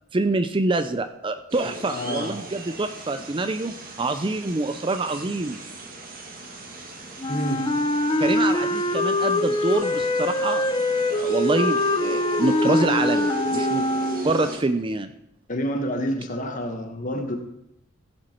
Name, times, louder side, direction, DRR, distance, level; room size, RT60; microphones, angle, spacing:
voice 1, 0.1-5.6 8.2-10.7 11.1-13.9 14.2-15.1, right 2 dB, 25° right, 10 dB, 0.4 m, -26 dB
sound 1, 1.5-14.6, equal, 40° right, 1.9 m, -36 dB
voice 2, 1.9-2.3 3.1-3.2 7.3-7.6 15.5-17.4, equal, 35° left, 5 dB, 1.4 m, -28 dB
Wind instrument woodwind instrument, 7.2-14.5, left 1 dB, 20° left, 0.6 m, -23 dB
15.5 x 7.9 x 4.5 m, 0.81 s
head